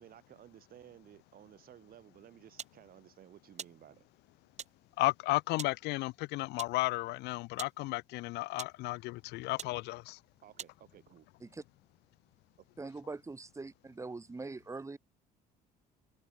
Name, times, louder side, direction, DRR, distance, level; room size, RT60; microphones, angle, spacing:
voice 1, 0.0-4.1 10.4-11.3, right 11 dB, 60° right, 6.3 m, -56 dB
sound 1, 2.6-2.8 3.6-3.8 4.6-4.8 5.6-5.8 6.6-6.8 7.6-7.8 8.5-8.8 9.6-9.8 10.6-10.8, right 8 dB, 40° right, 2.6 m, -44 dB
voice 2, 5.0-10.2, left 20 dB, 80° left, 0.4 m, -33 dB
voice 3, 12.8-15.0, right 3 dB, 15° right, 3.0 m, -43 dB
cardioid pair, 110°, 17 cm